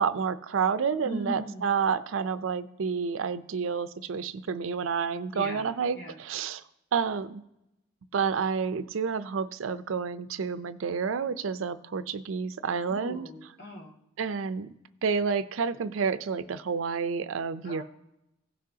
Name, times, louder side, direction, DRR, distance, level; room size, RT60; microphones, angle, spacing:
voice 1, 0.0-6.6 6.9-7.4 8.1-13.3 14.2-14.7 15.0-17.8, right 6 dB, 85° right, 13 dB, 0.5 m, -29 dB
voice 2, 1.0-1.6 5.3-6.2 12.7-13.9 17.6-17.8, right 1 dB, 55° left, -3 dB, 2.1 m, -39 dB
16.5 x 6.3 x 2.8 m, 0.86 s
head